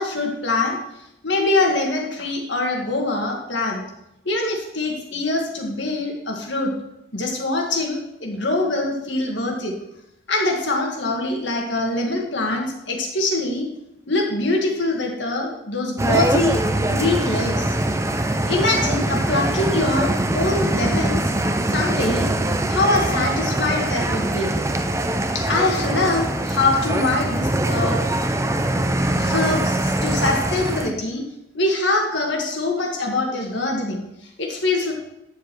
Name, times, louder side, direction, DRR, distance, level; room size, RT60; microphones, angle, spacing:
voice 1, 0.0-3.8 4.3-6.7 7.1-9.7 10.3-13.7 14.1-16.6 16.9-17.8 18.4-21.3 21.7-22.3 22.7-24.5 25.3-28.0 29.2-31.2 31.5-34.0 34.4-34.9, left 2 dB, 65° left, 1 dB, 1.9 m, -23 dB
sound 1, 16.0-30.9, right 1 dB, 15° right, 0.5 m, -22 dB
10.0 x 7.2 x 4.6 m, 0.84 s
head